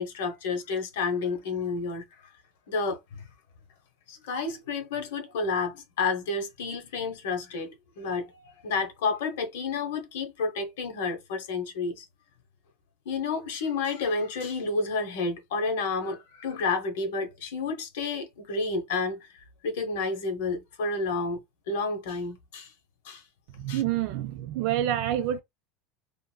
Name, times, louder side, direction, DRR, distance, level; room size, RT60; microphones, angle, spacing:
voice 1, 0.0-2.0 2.7-3.2 4.1-8.3 8.6-12.1 13.1-19.2 19.6-21.4 21.7-22.7 23.0-23.2 23.7-23.8, left 4 dB, 85° left, 0.9 m, -30 dB
voice 2, 23.6-25.4, right 11 dB, 50° right, 0.3 m, -27 dB
2.9 x 2.5 x 2.2 m
supercardioid pair, 170°, 0 cm